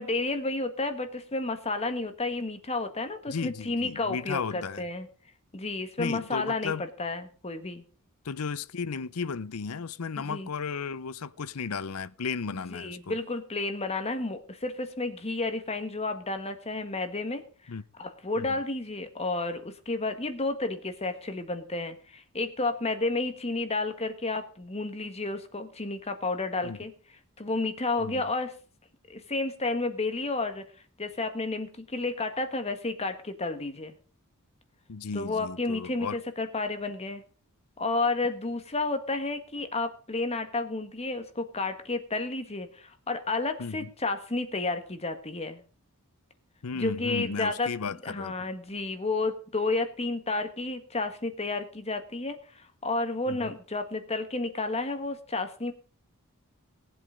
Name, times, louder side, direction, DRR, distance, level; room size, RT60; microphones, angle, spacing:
voice 1, 0.0-5.1 5.5-6.7 7.0-7.8 10.2-10.5 12.5-17.4 18.0-26.9 27.4-28.5 29.1-30.6 31.0-33.9 35.1-37.2 37.8-45.6 46.7-47.7 48.0-55.7, left 3 dB, 30° left, 1.6 m, -31 dB
voice 2, 3.3-4.8 6.0-6.9 8.2-13.2 17.7-17.8 18.4-18.6 26.6-26.8 28.0-28.2 34.9-36.2 43.6-43.9 46.6-48.5 53.3-53.5, left 5 dB, 75° left, 0.6 m, -34 dB
18.0 x 8.0 x 5.1 m
head